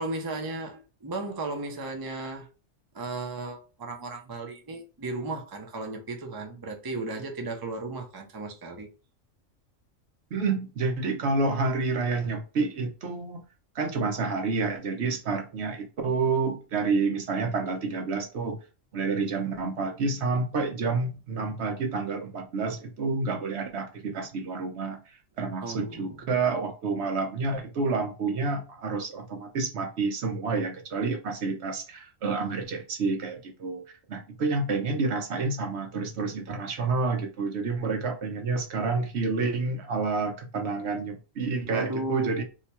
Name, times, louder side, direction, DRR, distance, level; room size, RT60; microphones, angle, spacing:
voice 1, 0.0-2.5 2.9-8.9 25.6-26.1 41.7-42.4, right 2 dB, 35° right, 0.4 m, -35 dB
voice 2, 10.3-13.4 13.7-18.6 18.9-25.0 25.4-33.8 34.1-42.4, right 4 dB, 60° right, 0.9 m, -29 dB
2.8 x 2.2 x 4.1 m
omnidirectional pair, 1.3 m